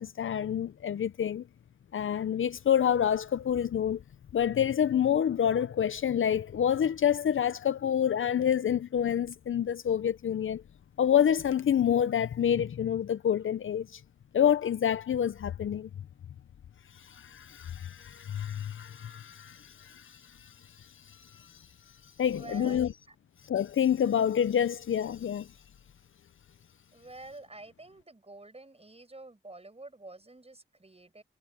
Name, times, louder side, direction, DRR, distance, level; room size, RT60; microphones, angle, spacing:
voice 1, 0.0-1.4 1.9-4.0 4.3-10.6 11.0-14.0 14.3-15.9 17.0-20.5 21.1-21.6 22.2-22.9 23.4-25.5, left 9 dB, 70° left, 0.5 m, -28 dB
voice 2, 22.2-23.2 26.9-31.2, right 2 dB, 30° right, 6.9 m, -48 dB
wide cardioid pair, 65°, 21 cm